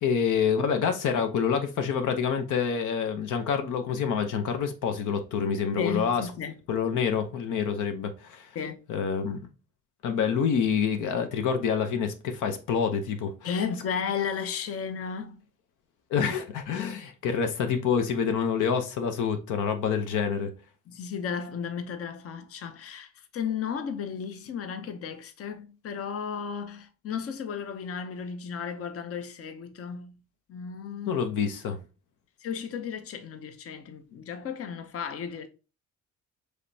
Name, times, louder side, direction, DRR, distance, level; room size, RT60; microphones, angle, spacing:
voice 1, 0.0-6.3 6.7-8.5 8.9-9.5 10.0-13.5 16.1-20.5 31.1-31.8, left 6 dB, 80° left, 0.8 m, -27 dB
voice 2, 5.8-6.6 8.5-8.8 13.4-15.4 20.9-30.2 30.5-31.2 32.4-35.5, left 7 dB, 50° left, 0.7 m, -34 dB
4.9 x 3.2 x 2.7 m
cardioid pair, 90°, 30 cm